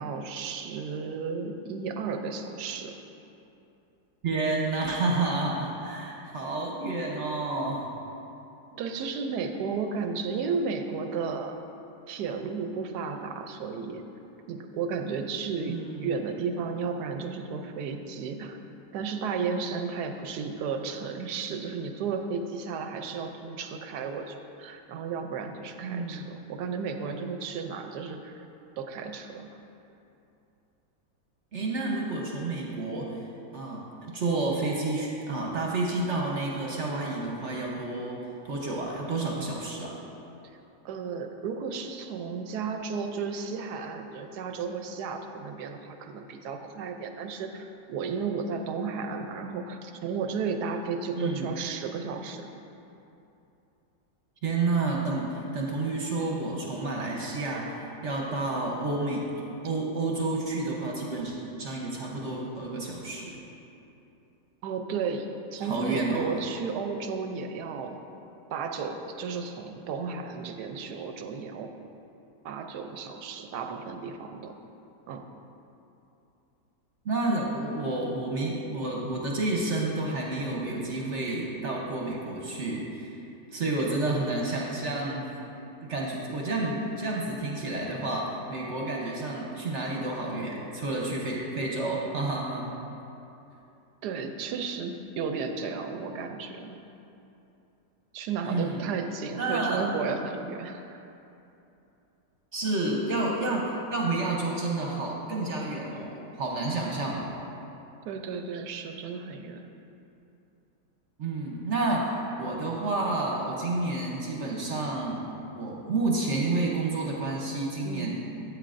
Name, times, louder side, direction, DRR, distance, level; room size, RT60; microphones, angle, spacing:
voice 1, 0.0-3.0 8.7-11.5 12.1-14.0 14.5-18.6 18.9-28.5 28.8-29.6 40.8-52.5 64.6-68.0 68.5-71.7 72.4-74.5 75.1-75.2 94.0-96.8 98.1-101.0 108.0-109.7 117.8-118.2, right 5 dB, 75° right, 5 dB, 1.1 m, -33 dB
voice 2, 4.2-8.0 15.7-16.1 25.8-26.3 31.5-33.2 33.5-38.2 38.4-40.0 51.2-51.5 54.4-59.3 59.6-63.4 65.6-66.3 77.0-83.2 83.5-85.3 85.8-92.7 98.4-98.8 99.4-99.9 102.5-107.4 111.2-115.3 115.5-118.2, right 2 dB, 50° right, -2 dB, 1.0 m, -30 dB
12.5 x 8.4 x 2.5 m, 2.9 s
omnidirectional pair, 1.9 m